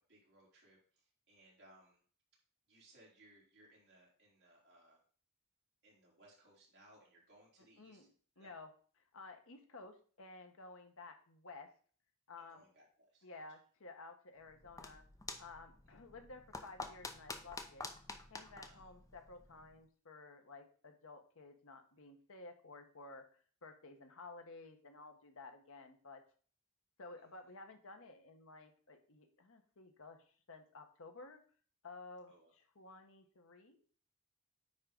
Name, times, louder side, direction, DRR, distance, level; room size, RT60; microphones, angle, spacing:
voice 1, 0.1-2.0 2.7-5.0 5.8-8.1 8.4-8.5 12.5-13.5 18.7-18.9 32.3-32.5, right 1 dB, 50° right, -4 dB, 4.2 m, -65 dB
voice 2, 7.8-8.1 8.4-8.7 9.1-11.7 12.3-12.6 13.2-15.0 15.4-17.9 18.3-26.2 27.0-31.4 31.8-32.3 32.8-33.8, left 3 dB, 65° left, 6 dB, 1.2 m, -54 dB
sound 1, 14.4-19.8, left 3 dB, 15° left, 0.7 m, -49 dB
9.6 x 3.7 x 5.2 m, 0.43 s
head